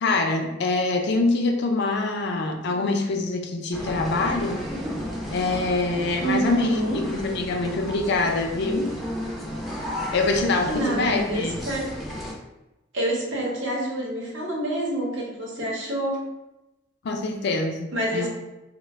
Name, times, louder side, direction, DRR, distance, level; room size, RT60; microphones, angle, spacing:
voice 1, 0.0-4.6 5.3-8.9 10.1-11.6 17.0-18.3, left 3 dB, 60° left, 3 dB, 0.4 m, -25 dB
sound 1, 3.7-12.3, equal, ahead, 0.4 m, -33 dB
voice 2, 6.2-7.0 10.7-11.9 12.9-16.2 17.9-18.3, right 1 dB, 85° right, -3 dB, 0.8 m, -27 dB
2.3 x 2.1 x 3.4 m, 0.98 s
head